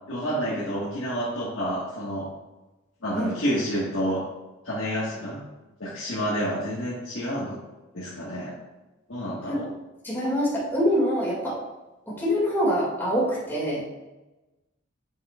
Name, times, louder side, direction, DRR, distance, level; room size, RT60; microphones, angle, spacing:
voice 1, 0.1-2.3 3.0-4.2 4.6-5.4 5.8-7.6 7.9-8.5 9.1-9.7, equal, 70° left, -8 dB, 1.6 m, -29 dB
voice 2, 10.0-11.6 12.1-13.8, equal, 10° left, -7 dB, 2.4 m, -25 dB
7.3 x 7.0 x 2.5 m, 1.1 s
head